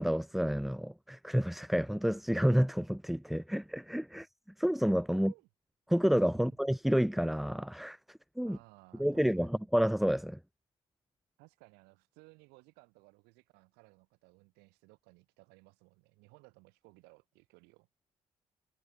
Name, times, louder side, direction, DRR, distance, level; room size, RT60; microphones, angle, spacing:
voice 1, 0.0-4.3 4.6-5.3 5.9-8.6 9.0-10.4, equal, ahead, 0.4 m, -29 dB
voice 2, 5.1-5.5 6.3-6.6 8.4-9.6 11.4-17.9, right 26 dB, 70° right, 5.2 m, -60 dB
figure-of-eight pair, 45°, 17 cm